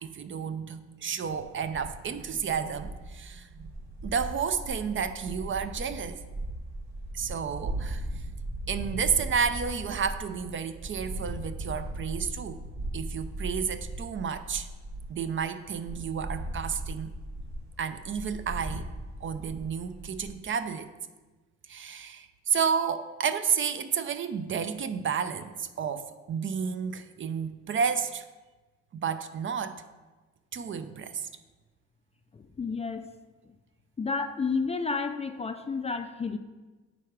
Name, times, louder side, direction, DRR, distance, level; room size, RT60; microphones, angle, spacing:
voice 1, 0.0-3.7 4.0-6.2 7.1-8.1 8.7-12.6 12.9-14.7 15.1-17.2 17.8-18.9 19.2-20.9 21.7-28.2 29.0-29.8 30.5-31.3, right 6 dB, 40° right, 11 dB, 0.5 m, -31 dB
sound 1, 1.3-15.4 15.7-20.3, right 1 dB, 65° right, 1.5 m, -38 dB
voice 2, 32.3-33.1 34.0-36.4, left 4 dB, 20° left, 8 dB, 0.4 m, -31 dB
9.5 x 3.6 x 4.6 m, 1.2 s
cardioid pair, 90°, 30 cm